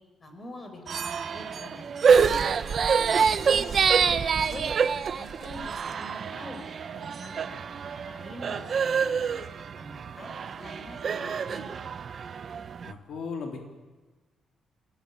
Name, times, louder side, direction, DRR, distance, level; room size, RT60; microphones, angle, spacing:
voice 1, 0.2-0.8 1.1-4.7 5.1-6.6 6.9-11.8, left 1 dB, 25° left, 5 dB, 5.2 m, -45 dB
sound 1, 0.9-12.9, right 6 dB, 45° right, 0.9 m, -26 dB
voice 2, 12.8-13.6, left 5 dB, 70° left, 2 dB, 3.8 m, -36 dB
27.5 x 18.5 x 9.4 m, 1.3 s
cardioid pair, 145°, 0 cm